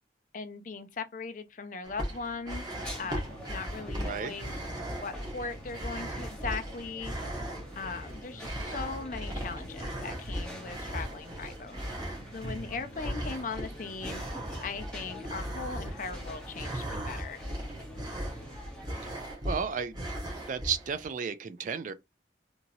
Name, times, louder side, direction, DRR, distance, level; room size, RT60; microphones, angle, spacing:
voice 1, 0.3-2.6 3.0-4.6 5.0-7.3 7.8-11.8 12.3-14.2 14.6-17.4, left 4 dB, 45° left, 0.4 m, -39 dB
sound 1, 1.8-21.1, equal, 25° right, 1.0 m, -38 dB
sound 2, 2.7-19.1, equal, 5° left, 0.8 m, -45 dB
voice 2, 19.5-20.0 20.5-21.9, right 6 dB, 45° right, 0.3 m, -33 dB
2.9 x 2.7 x 2.6 m
head